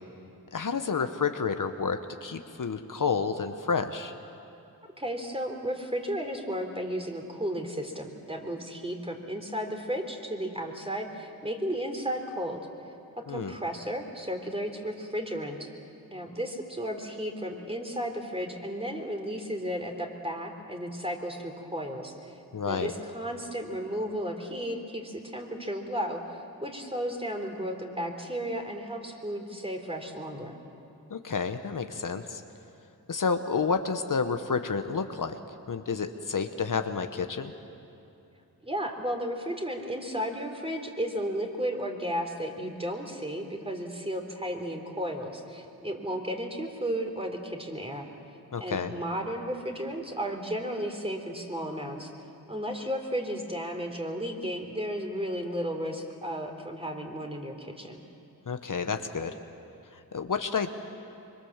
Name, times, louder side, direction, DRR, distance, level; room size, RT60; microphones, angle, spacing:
voice 1, 0.5-4.1 13.3-13.5 22.5-22.9 31.1-32.4 33.1-35.4 35.7-37.5 48.5-48.9 58.5-59.3 59.9-60.7, left 5 dB, 55° left, 7 dB, 1.1 m, -30 dB
voice 2, 5.0-12.7 13.3-15.7 16.1-22.3 22.6-30.6 38.6-48.1 48.6-52.1 52.5-58.0, equal, 15° right, 3 dB, 3.5 m, -34 dB
25.5 x 23.0 x 7.3 m, 2.8 s
cardioid pair, 55°, 37 cm